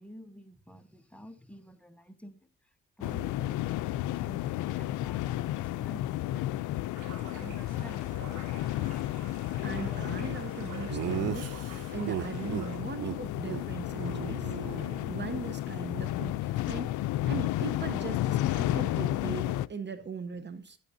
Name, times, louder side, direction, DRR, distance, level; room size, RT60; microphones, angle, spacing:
voice 1, 0.0-8.1, equal, 5° left, 1.2 m, -50 dB
sound 1, 3.0-19.7, left 15 dB, 80° left, 0.5 m, -32 dB
sound 2, 6.9-12.8, right 3 dB, 70° right, 3.4 m, -48 dB
voice 2, 9.3-20.8, right 5 dB, 35° right, 0.9 m, -40 dB
Laughter, 10.9-12.7 13.0-13.2 13.4-13.6 13.9-15.5, right 13 dB, 55° right, 0.5 m, -36 dB
12.0 x 9.9 x 2.7 m
cardioid pair, 90°, 30 cm